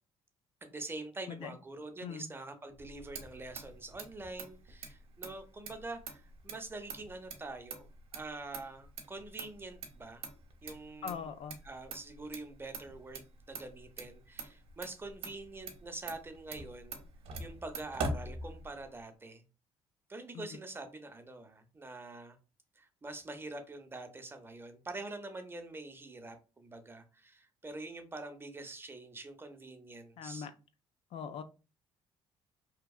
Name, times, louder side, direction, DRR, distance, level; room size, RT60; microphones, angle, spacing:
voice 1, 0.6-10.3 10.6-11.3 11.6-17.0 17.4-19.4 20.1-22.4 22.8-30.5, right 2 dB, 20° right, 7 dB, 0.6 m, -45 dB
voice 2, 2.0-2.3 11.0-11.6 20.3-20.6 30.2-30.5 31.1-31.4, left 7 dB, 60° left, 10 dB, 0.4 m, -41 dB
Motor vehicle (road), 2.7-19.0, right 3 dB, 65° right, 0.6 m, -45 dB
2.7 x 2.2 x 2.3 m, 0.32 s
supercardioid pair, 80°, 11 cm